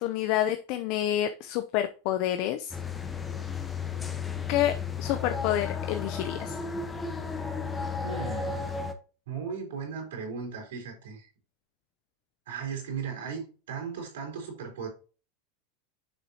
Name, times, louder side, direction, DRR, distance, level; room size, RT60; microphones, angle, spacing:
voice 1, 0.0-2.8 4.5-6.6, left 12 dB, 55° left, 0.6 m, -28 dB
sound 1, 2.7-8.9, left 5 dB, 20° left, 1.0 m, -33 dB
voice 2, 8.0-8.7 9.3-11.3 12.5-14.9, right 6 dB, 80° right, 4.0 m, -36 dB
7.3 x 5.5 x 2.9 m
hypercardioid pair, 100°, 0 cm